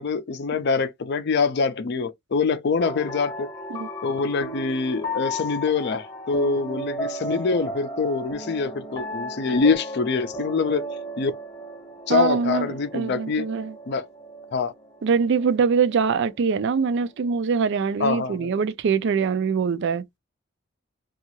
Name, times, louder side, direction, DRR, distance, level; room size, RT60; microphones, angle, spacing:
voice 1, 0.0-3.5 4.0-10.9 11.2-11.3 12.1-13.4 13.9-14.1 14.5-14.7 18.0-18.5, left 4 dB, 55° left, 0.5 m, -24 dB
sound 1, 2.8-17.0, equal, 20° left, 0.9 m, -35 dB
voice 2, 12.1-13.8 15.0-20.0, right 5 dB, 60° right, 0.4 m, -23 dB
2.7 x 2.4 x 2.9 m
head